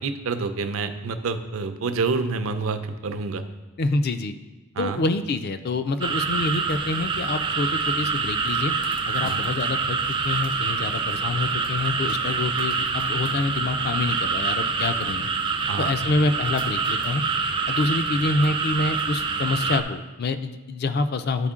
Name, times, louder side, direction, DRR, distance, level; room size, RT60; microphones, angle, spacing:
voice 1, 0.0-3.4 4.8-5.0 9.2-9.4 15.7-15.9, right 4 dB, 70° right, 9 dB, 0.5 m, -28 dB
voice 2, 3.8-4.3 4.8-8.7 9.1-10.0 10.2-15.3 15.8-17.2 17.7-21.5, left 3 dB, 45° left, 10 dB, 0.4 m, -26 dB
sound 1, 6.0-19.8, right 5 dB, 20° right, 0.3 m, -26 dB
9.7 x 4.3 x 3.7 m, 1.2 s
head